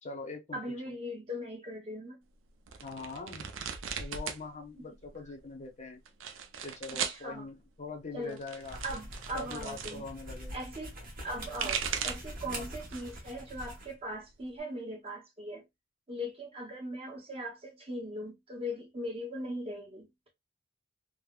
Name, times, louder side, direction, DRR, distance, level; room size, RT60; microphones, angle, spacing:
voice 1, 0.0-0.6 2.8-3.5 4.0-6.0 6.6-8.8 9.3-10.6 11.6-11.7 12.5-12.7, left 3 dB, 35° left, 0.7 m, -43 dB
voice 2, 0.5-2.2 6.9-7.5 8.1-8.4 8.8-10.0 10.5-11.0 11.2-15.6 16.1-20.1, equal, 30° right, 0.8 m, -39 dB
sound 1, 2.7-4.4 4.7-5.4 6.1-7.2 8.2-10.0 11.2-12.4 12.8-13.3 13.6-14.6, right 7 dB, 75° right, 0.5 m, -38 dB
sound 2, 8.6-13.9, right 1 dB, 45° right, 1.2 m, -44 dB
3.4 x 2.1 x 2.3 m
head